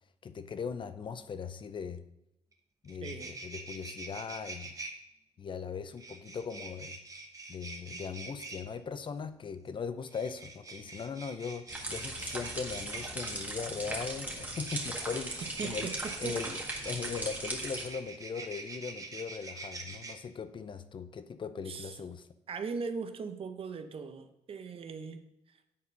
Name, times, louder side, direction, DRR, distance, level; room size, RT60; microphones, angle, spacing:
voice 1, 0.2-2.0 2.8-4.7 5.4-7.0 7.5-16.6 16.8-22.3, left 6 dB, 45° left, 12 dB, 0.5 m, -39 dB
sound 1, 2.5-2.6 2.8-4.9 6.0-8.6 10.0-13.4 14.4-20.1, right 3 dB, 30° right, 1.2 m, -45 dB
voice 2, 3.0-3.4 15.4-16.4 21.7-22.0 22.5-25.3, right 5 dB, 50° right, 9 dB, 0.8 m, -39 dB
sound 2, 11.7-17.9, right 2 dB, 15° right, 1.8 m, -38 dB
8.5 x 4.2 x 5.3 m, 0.88 s
cardioid pair, 85°, 12 cm